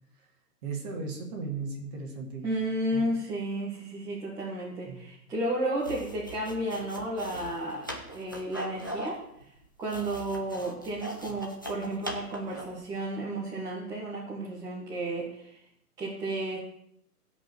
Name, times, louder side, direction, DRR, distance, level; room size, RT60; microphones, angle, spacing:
voice 1, 0.6-2.5 2.9-3.1 4.8-5.1, right 4 dB, 25° right, 0 dB, 2.6 m, -36 dB
voice 2, 2.4-9.2 9.8-15.6 16.0-16.6, right 1 dB, 5° right, -7 dB, 1.4 m, -32 dB
sound 1, 5.8-12.8, equal, 15° left, 0.5 m, -40 dB
15.5 x 5.3 x 7.4 m, 0.75 s
hypercardioid pair, 160°, 47 cm